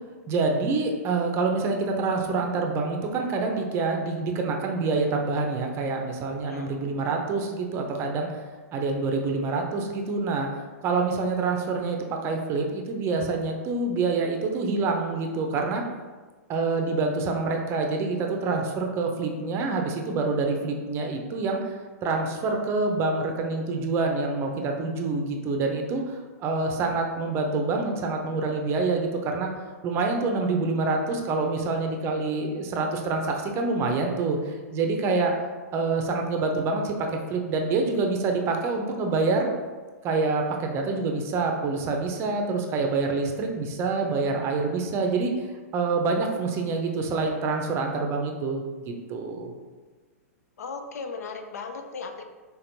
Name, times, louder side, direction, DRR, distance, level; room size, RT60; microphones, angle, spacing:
voice 1, 0.3-8.4 8.7-10.5 10.8-15.8 16.5-29.5 29.8-35.4 35.7-39.5 40.0-49.5, right 3 dB, 30° right, 3 dB, 0.6 m, -26 dB
voice 2, 50.6-52.2, left 4 dB, 75° left, 6 dB, 0.5 m, -36 dB
4.2 x 3.9 x 2.6 m, 1.4 s
hypercardioid pair, 120°, 9 cm